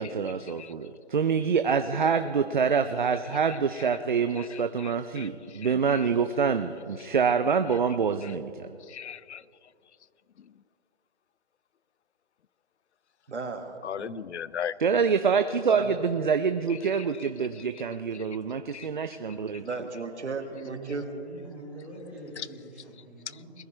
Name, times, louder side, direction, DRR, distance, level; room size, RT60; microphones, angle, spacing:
voice 1, 0.0-8.7 14.8-19.6, right 6 dB, 45° right, 9 dB, 0.5 m, -26 dB
voice 2, 4.4-5.3 5.6-6.0 8.2-8.3 8.9-9.4 13.8-14.8 18.7-18.9 22.4-22.5, left 9 dB, 80° left, 19 dB, 0.5 m, -37 dB
voice 3, 13.3-14.2 15.6-16.0 19.6-21.1, right 4 dB, 85° right, 6 dB, 1.9 m, -35 dB
voice 4, 20.5-23.5, right 2 dB, 5° right, -4 dB, 1.3 m, -43 dB
21.5 x 14.5 x 3.3 m, 2.4 s
hypercardioid pair, 170°, 34 cm